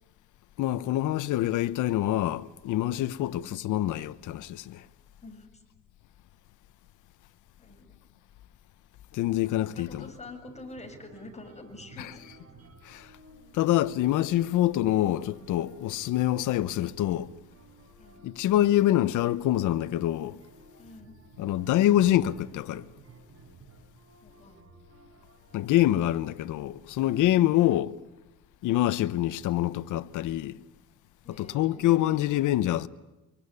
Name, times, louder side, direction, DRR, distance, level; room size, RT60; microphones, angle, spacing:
voice 1, 0.6-4.8 9.1-10.0 12.8-13.1 13.5-17.3 18.2-20.4 21.4-22.9 25.5-27.9 28.6-30.6 31.4-32.9, left 13 dB, 90° left, 1.1 m, -25 dB
voice 2, 3.2-3.6 5.2-5.6 7.6-8.0 9.2-12.3 18.0-18.3 20.8-21.2 24.2-24.7 31.2-32.0, left 2 dB, 20° left, 7.0 m, -47 dB
sound 1, 9.5-26.8, right 4 dB, 55° right, 5.2 m, -55 dB
25.5 x 23.5 x 9.7 m
cardioid pair, 90°, 30 cm